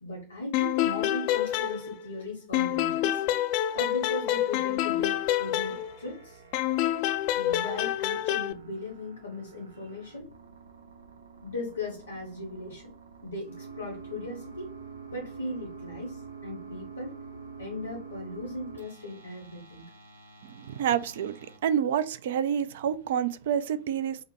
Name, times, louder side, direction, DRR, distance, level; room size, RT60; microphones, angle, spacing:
voice 1, 0.0-3.2 3.7-6.4 7.4-10.3 11.4-12.9 13.2-14.7 15.1-17.2 17.6-19.9, left 2 dB, 75° left, 0.9 m, -38 dB
sound 1, 0.5-2.2 2.5-6.2 6.5-8.5, left 12 dB, 45° left, 0.3 m, -27 dB
sound 2, 5.1-21.6, right 4 dB, 80° right, 0.8 m, -47 dB
voice 2, 20.4-21.4 21.6-24.2, right 9 dB, 55° right, 0.4 m, -28 dB
4.7 x 2.1 x 3.1 m
figure-of-eight pair, 90°, 0 cm